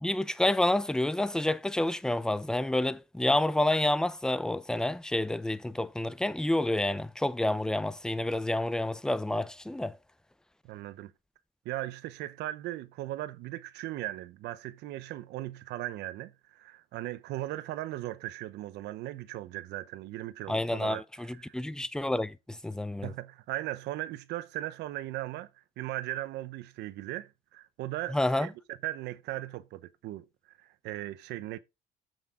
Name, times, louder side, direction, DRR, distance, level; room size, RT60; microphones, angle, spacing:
voice 1, 0.0-10.0 20.5-23.1 28.1-28.5, left 1 dB, 5° left, 0.6 m, -29 dB
voice 2, 10.6-11.1 11.6-21.0 21.4-21.5 23.0-25.5 25.8-30.3 30.6-31.6, right 15 dB, 85° right, 0.9 m, -38 dB
8.0 x 7.7 x 3.8 m
cardioid pair, 110°, 17 cm